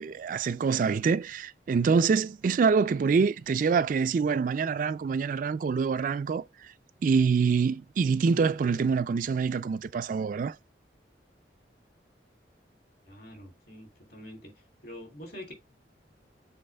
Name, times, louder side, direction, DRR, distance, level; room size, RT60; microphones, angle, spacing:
voice 1, 0.0-6.7 7.0-10.6, right 5 dB, 45° right, 0.3 m, -26 dB
voice 2, 13.1-14.5 14.8-15.5, left 1 dB, 60° left, 3.1 m, -45 dB
7.7 x 4.1 x 3.3 m
head